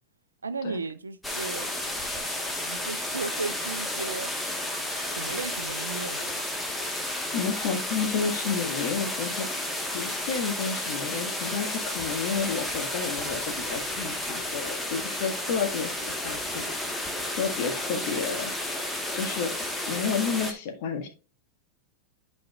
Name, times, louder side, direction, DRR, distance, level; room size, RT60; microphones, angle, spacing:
voice 1, 0.4-1.8 2.7-4.3 5.0-6.4, right 4 dB, 75° right, 0.6 m, -35 dB
sound 1, 1.2-20.5, left 1 dB, 5° left, 1.4 m, -32 dB
voice 2, 7.3-9.6 9.9-18.5 19.1-21.1, left 5 dB, 50° left, 1.7 m, -31 dB
11.5 x 5.3 x 2.4 m
figure-of-eight pair, 90°, 0 cm